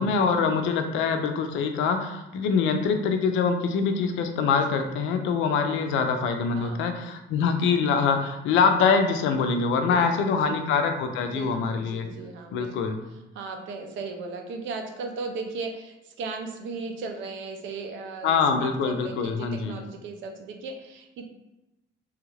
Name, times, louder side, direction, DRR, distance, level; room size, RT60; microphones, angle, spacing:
voice 1, 0.0-12.1 12.5-13.0 18.2-19.8, left 5 dB, 85° left, 6 dB, 0.5 m, -24 dB
voice 2, 6.5-7.1 9.7-10.7 11.2-12.7 13.3-21.3, right 4 dB, 80° right, 4 dB, 0.5 m, -37 dB
3.1 x 2.4 x 3.1 m, 0.98 s
cardioid pair, 160°, 19 cm